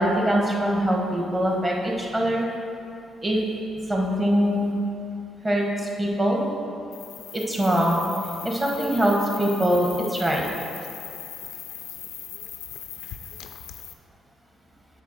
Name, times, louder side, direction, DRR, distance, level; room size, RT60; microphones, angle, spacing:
voice 1, 0.0-2.4 3.2-3.4 3.9-4.7 5.4-6.5 7.3-8.0 8.4-10.4, equal, 20° right, -1 dB, 1.5 m, -23 dB
sound 1, 6.9-13.9, left 10 dB, 80° left, 0.4 m, -39 dB
8.1 x 3.9 x 6.6 m, 2.6 s
cardioid pair, 90°, 0 cm